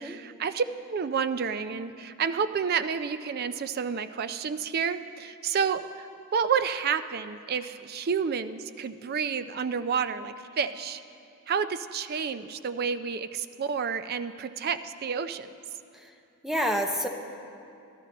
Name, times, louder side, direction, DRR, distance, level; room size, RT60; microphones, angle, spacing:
voice 1, 0.0-11.0 11.5-15.5, right 6 dB, 45° right, 12 dB, 0.4 m, -30 dB
voice 2, 16.4-17.1, equal, ahead, 4 dB, 0.6 m, -28 dB
14.0 x 12.0 x 4.1 m, 2.6 s
head